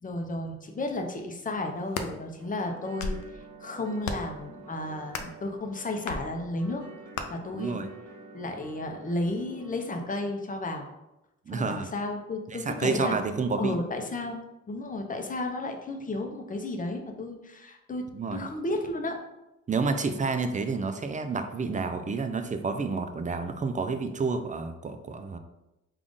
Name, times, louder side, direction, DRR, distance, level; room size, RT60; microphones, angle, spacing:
voice 1, 0.0-6.8 7.3-7.8 8.3-10.9 11.5-13.2 13.6-14.4 14.7-19.2, left 2 dB, 25° left, 3 dB, 0.6 m, -33 dB
sound 1, 1.7-2.1 2.8-3.3 4.0-4.4 5.1-5.4 6.1-6.2 7.1-7.3, left 4 dB, 75° left, 0.5 m, -34 dB
sound 2, 2.4-10.3, right 3 dB, 85° right, 0.9 m, -49 dB
voice 2, 7.5-7.9 11.5-11.9 12.5-13.8 18.1-18.4 19.7-25.4, right 4 dB, 25° right, 8 dB, 0.4 m, -29 dB
3.7 x 2.4 x 3.6 m, 0.93 s
cardioid pair, 80°, 30 cm